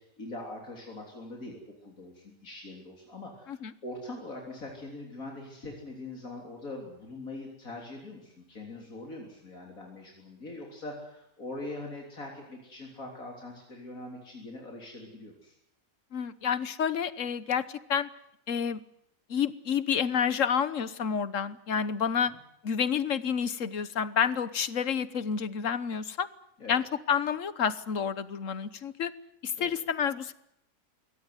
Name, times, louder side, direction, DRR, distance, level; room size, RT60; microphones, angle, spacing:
voice 1, 0.2-15.5 22.2-22.4 26.6-26.8 29.6-29.7, left 2 dB, 85° left, 0 dB, 4.0 m, -42 dB
voice 2, 16.1-18.1 18.5-18.8 19.3-22.3 22.6-26.3 26.7-29.1 29.4-30.3, left 7 dB, 70° left, 16 dB, 1.4 m, -29 dB
23.0 x 17.5 x 9.6 m, 0.80 s
omnidirectional pair, 1.4 m